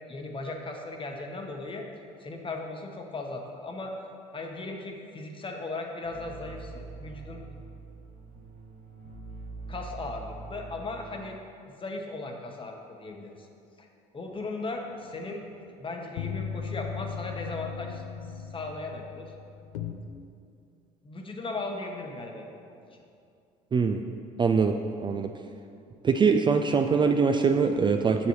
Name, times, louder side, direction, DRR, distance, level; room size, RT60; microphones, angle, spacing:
voice 1, 0.1-1.9 2.2-3.9 4.3-7.4 9.7-11.4 11.7-13.5 13.8-13.9 14.1-15.5 15.8-18.0 18.5-19.3 21.0-22.5 22.9-23.0, left 3 dB, 30° left, 2 dB, 1.0 m, -37 dB
sound 1, 6.0-11.3, right 3 dB, 50° right, 0.9 m, -44 dB
sound 2, 14.9-19.9, left 7 dB, 90° left, 0.4 m, -38 dB
voice 2, 23.7-24.0 24.4-25.3 26.0-28.3, right 5 dB, 25° right, 5 dB, 0.3 m, -23 dB
7.0 x 6.7 x 3.1 m, 2.4 s
supercardioid pair, 70°, 17 cm